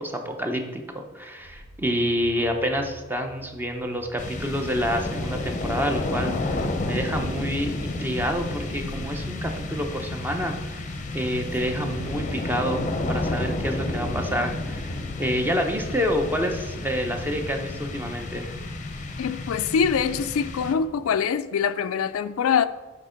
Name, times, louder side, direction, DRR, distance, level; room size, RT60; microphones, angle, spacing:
voice 1, 0.0-18.5, equal, 10° right, 4 dB, 0.7 m, -28 dB
sound 1, 1.4-18.1, right 1 dB, 60° right, 0.7 m, -47 dB
sound 2, 4.2-21.1, left 2 dB, 35° left, 0.7 m, -31 dB
voice 2, 19.2-22.7, left 6 dB, 90° left, 12 dB, 0.4 m, -24 dB
6.6 x 5.2 x 5.1 m, 1.2 s
head